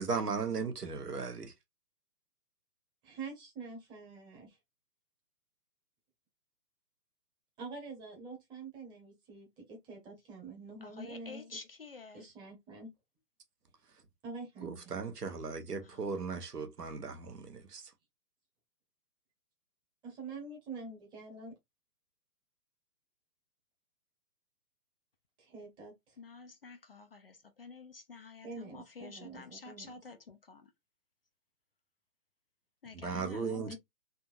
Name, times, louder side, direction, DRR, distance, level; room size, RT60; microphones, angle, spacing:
voice 1, 0.0-1.5 14.6-17.8 32.9-33.8, right 5 dB, 70° right, 1.1 m, -37 dB
voice 2, 3.1-4.6 7.6-11.4 12.1-12.9 14.2-14.9 20.0-21.5 25.4-26.2 28.4-29.9 33.5-33.8, right 4 dB, 10° right, 1.0 m, -46 dB
voice 3, 10.8-12.2 15.8-16.0 26.2-30.7 32.8-33.7, left 4 dB, 40° left, 0.6 m, -50 dB
3.6 x 2.8 x 2.5 m
figure-of-eight pair, 130°, 48 cm